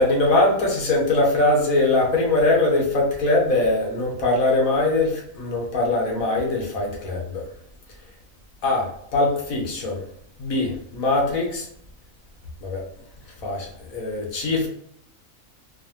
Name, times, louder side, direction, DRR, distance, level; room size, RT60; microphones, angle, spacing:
voice 1, 0.0-7.4 8.6-8.9 9.1-10.0 10.4-11.6 12.6-12.8 13.4-14.7, left 2 dB, 80° left, -1 dB, 1.5 m, -21 dB
4.4 x 2.5 x 3.0 m, 0.69 s
omnidirectional pair, 1.4 m